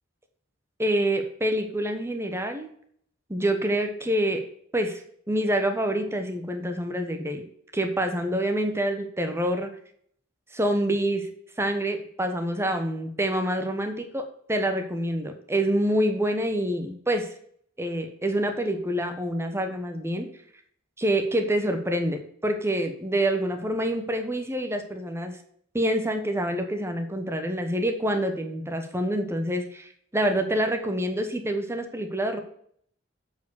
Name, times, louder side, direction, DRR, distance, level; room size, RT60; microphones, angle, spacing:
voice 1, 0.8-2.7 3.3-4.4 4.7-5.0 5.3-7.4 7.7-9.7 10.5-11.3 11.6-17.3 17.8-20.3 21.0-25.4 25.7-32.4, right 1 dB, 15° right, 6 dB, 1.1 m, -26 dB
8.0 x 4.9 x 6.4 m, 0.64 s
head